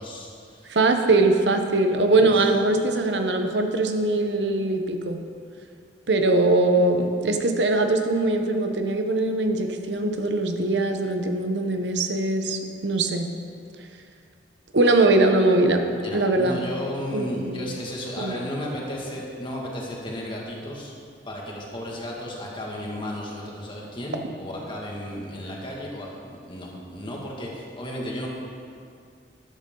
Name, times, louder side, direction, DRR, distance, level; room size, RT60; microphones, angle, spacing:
voice 1, 0.0-0.8 2.1-2.3 15.9-20.9 21.3-28.3, equal, 30° left, -3 dB, 2.1 m, -34 dB
voice 2, 0.7-5.2 6.1-13.3 14.7-15.8 16.1-16.6 17.1-17.7 18.2-18.4, right 2 dB, 85° right, 5 dB, 1.0 m, -21 dB
12.5 x 11.5 x 3.9 m, 2.3 s
head